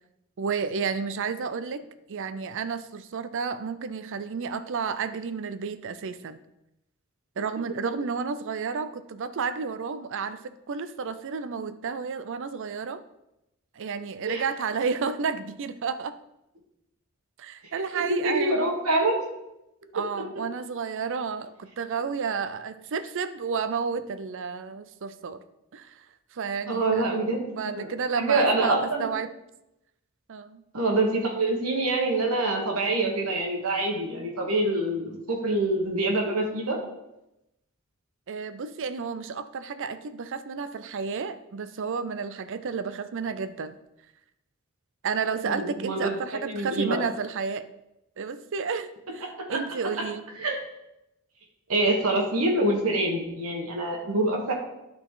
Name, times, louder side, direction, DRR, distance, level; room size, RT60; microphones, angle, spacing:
voice 1, 0.4-1.8 2.1-6.4 7.4-13.0 13.7-16.2 17.4-18.6 19.9-25.4 25.7-26.1 26.3-29.3 30.3-30.6 38.3-43.7 45.0-47.7 48.2-50.2, right 5 dB, 60° right, 13 dB, 0.5 m, -31 dB
voice 2, 17.9-19.1 26.7-27.9 28.2-29.1 30.7-36.8 45.4-46.1 46.4-47.0 49.2-49.6 50.4-50.6 51.7-54.5, right 2 dB, 80° right, 1 dB, 1.6 m, -25 dB
11.5 x 4.0 x 3.9 m, 0.89 s
head